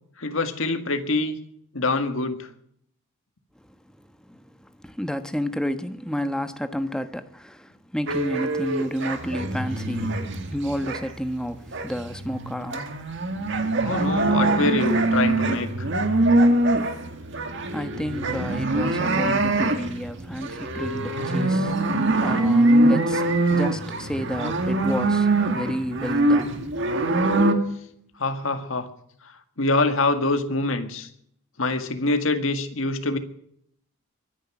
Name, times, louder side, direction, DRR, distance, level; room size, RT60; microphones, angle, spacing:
voice 1, 0.2-1.4 1.7-2.5 13.8-15.9 24.4-24.5 28.2-28.9 29.6-31.1 31.6-33.2, left 2 dB, 70° left, 1.9 m, -25 dB
voice 2, 4.3-10.2 10.5-12.9 17.7-23.2 23.5-27.3, equal, 5° left, 1.1 m, -31 dB
sound 1, 8.1-11.2 11.4-27.5, right 2 dB, 60° right, 2.0 m, -23 dB
23.0 x 10.0 x 6.1 m
head